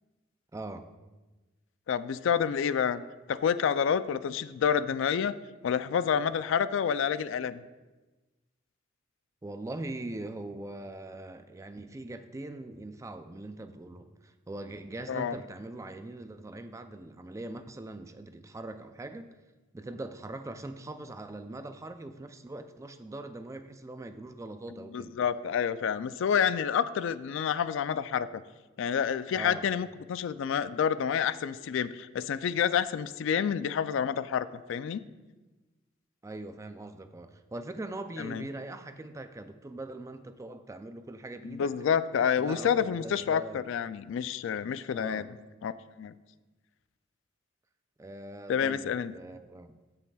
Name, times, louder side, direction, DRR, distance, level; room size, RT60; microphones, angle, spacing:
voice 1, 0.5-0.9 9.4-19.3 19.7-25.2 29.3-29.7 36.2-41.7 42.4-43.6 44.9-45.3 48.0-49.7, right 2 dB, 15° right, 9 dB, 0.4 m, -41 dB
voice 2, 1.9-3.0 3.3-5.3 5.6-7.6 15.1-15.4 24.9-28.4 28.8-35.0 38.2-38.4 41.4-45.3 45.6-45.7 46.0-46.1 48.5-49.1, left 7 dB, 70° left, 14 dB, 0.3 m, -28 dB
15.0 x 5.7 x 2.3 m, 1.2 s
head